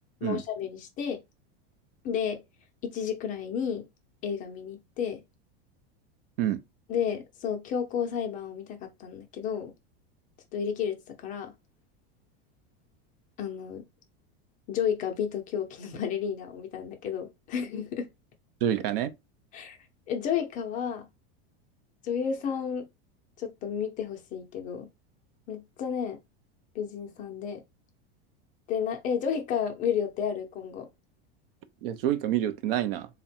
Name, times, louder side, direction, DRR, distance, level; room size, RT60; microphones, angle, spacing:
voice 1, 0.2-1.2 2.0-2.4 2.8-3.9 4.2-5.2 6.9-9.7 10.5-11.5 13.4-13.8 14.7-18.1 19.5-19.8 20.1-21.1 22.0-22.9 23.4-24.9 25.5-26.2 26.7-27.6 28.7-30.9, left 7 dB, 25° left, 0.6 m, -31 dB
voice 2, 18.6-19.1 31.8-33.1, right 11 dB, 65° right, 0.6 m, -27 dB
3.6 x 2.2 x 4.2 m
supercardioid pair, 165°, 31 cm